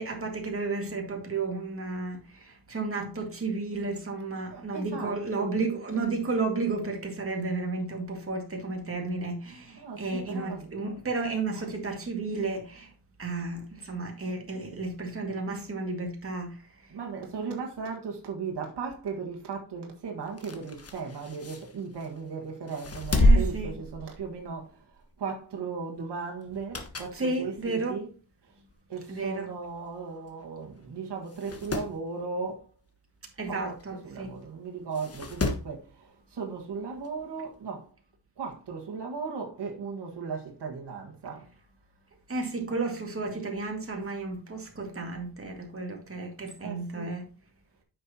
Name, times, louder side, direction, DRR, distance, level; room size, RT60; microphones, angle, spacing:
voice 1, 0.0-12.9 13.2-16.9 23.1-23.8 27.1-28.0 29.1-29.5 33.4-34.3 42.3-47.3, right 3 dB, 35° right, 2.0 m, -32 dB
voice 2, 4.5-6.1 9.7-10.9 11.5-11.7 16.9-28.1 28.4-28.5 28.9-32.7 33.5-37.9 38.4-41.5 46.6-47.1, right 5 dB, 80° right, 1.7 m, -37 dB
sound 1, 20.2-22.2 22.7-24.6 24.9-25.1 26.4-27.2 27.7-27.8 28.7-28.8 29.0-29.1 29.3-29.4 30.3-30.5 30.8-30.9 31.3-31.9 33.8-33.9 34.9-35.7 37.0-37.1, left 1 dB, 35° left, 1.4 m, -28 dB
9.0 x 6.5 x 2.8 m
wide cardioid pair, 100°, 40 cm